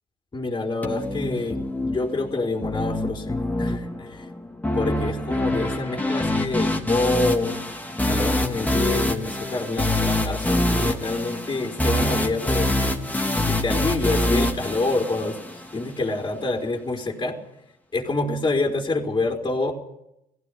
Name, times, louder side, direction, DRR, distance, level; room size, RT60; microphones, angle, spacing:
voice 1, 0.3-4.3 4.7-7.6 8.0-13.0 13.5-15.4 15.7-17.4 17.9-19.7, left 2 dB, 25° left, 1 dB, 4.1 m, -27 dB
sound 1, 0.8-15.8, left 1 dB, 10° left, 3.3 m, -25 dB
18.0 x 15.5 x 10.0 m, 0.83 s
supercardioid pair, 80°, 16 cm